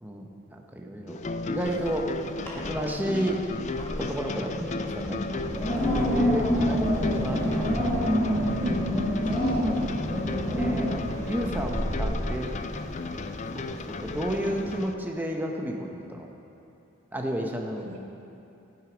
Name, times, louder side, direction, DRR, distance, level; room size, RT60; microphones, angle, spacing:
voice 1, 0.0-1.2 1.4-2.2 2.5-3.4 4.0-5.4 5.9-7.9 8.3-8.7 9.4-10.0 10.6-10.9 11.2-12.5 12.9-13.0 13.5-16.3 17.1-17.9, equal, 10° right, 1 dB, 0.9 m, -32 dB
sound 1, 1.1-14.9, left 3 dB, 35° left, 0.4 m, -35 dB
Wind, 1.6-2.0 2.4-2.9 3.3-14.7, equal, 10° left, 1.6 m, -28 dB
voice 2, 8.6-9.7 17.8-18.0, right 1 dB, 85° right, -2 dB, 2.1 m, -37 dB
14.5 x 9.0 x 5.1 m, 2.8 s
head